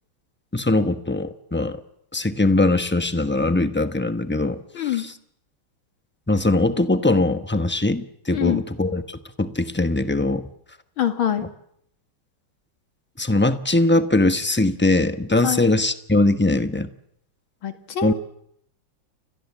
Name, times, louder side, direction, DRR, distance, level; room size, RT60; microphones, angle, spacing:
voice 1, 0.5-1.8 2.1-4.6 6.3-10.4 13.2-16.9 18.0-18.1, left 2 dB, 10° left, 9 dB, 0.7 m, -21 dB
voice 2, 4.7-5.0 8.3-8.6 11.0-11.4 15.4-15.6 17.6-18.1, left 10 dB, 80° left, 7 dB, 2.8 m, -24 dB
30.0 x 23.0 x 7.4 m, 0.73 s
omnidirectional pair, 2.2 m